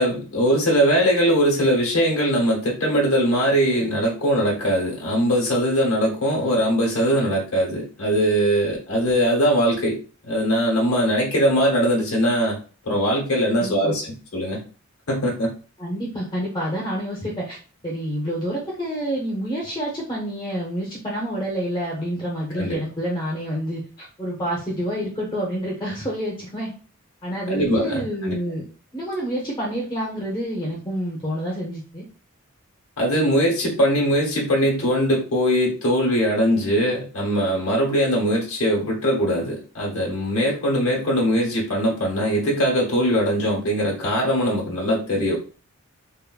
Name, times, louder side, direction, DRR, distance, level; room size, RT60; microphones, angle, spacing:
voice 1, 0.0-10.0 10.3-12.6 12.8-14.1 14.3-14.6 15.1-15.5 22.6-22.8 27.5-28.4 33.0-45.4, equal, 80° left, -3 dB, 1.0 m, -21 dB
voice 2, 13.6-13.9 15.8-17.6 17.8-26.7 27.2-28.7 28.9-32.0, equal, 20° left, -5 dB, 0.7 m, -28 dB
3.4 x 2.1 x 2.2 m, 0.38 s
head